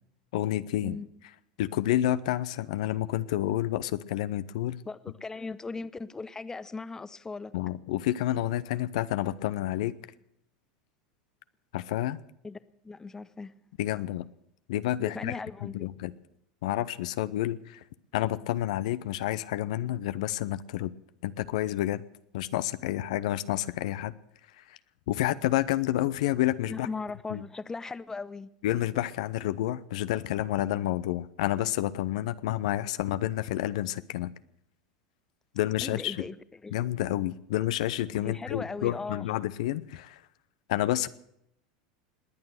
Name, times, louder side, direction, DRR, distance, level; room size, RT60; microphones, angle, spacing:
voice 1, 0.3-1.0 1.6-4.8 7.5-9.9 11.7-12.2 13.8-14.3 14.7-16.1 16.6-17.8 18.1-20.9 21.2-22.0 22.3-24.1 24.6-24.8 25.1-26.9 27.3-27.4 28.6-34.3 35.5-36.2 36.7-40.2 40.7-41.1, left 14 dB, 70° left, 0.7 m, -29 dB
voice 2, 4.9-7.5 12.4-12.6 12.8-13.5 15.0-15.9 26.6-28.5 35.8-36.4 36.6-36.8 38.1-39.3, left 4 dB, 15° left, 0.8 m, -38 dB
20.5 x 8.8 x 7.8 m
hypercardioid pair, 95°, 4 cm